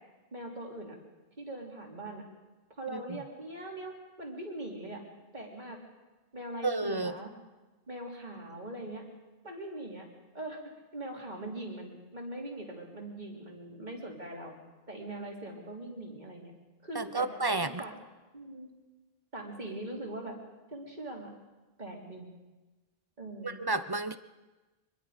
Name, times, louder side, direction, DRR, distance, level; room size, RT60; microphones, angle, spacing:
voice 1, 0.3-1.0 1.4-2.2 2.8-5.0 5.3-5.8 6.3-7.3 7.9-9.0 9.4-10.1 10.3-10.6 10.9-14.6 14.9-16.5 16.8-17.9 18.3-18.7 19.3-20.4 20.7-21.3 21.8-22.3 23.2-23.7, right 1 dB, 45° right, -1 dB, 3.9 m, -41 dB
voice 2, 6.6-7.1 16.9-17.8 23.4-24.2, right 3 dB, 25° right, 12 dB, 0.7 m, -31 dB
25.0 x 22.5 x 5.2 m, 1.2 s
omnidirectional pair, 1.0 m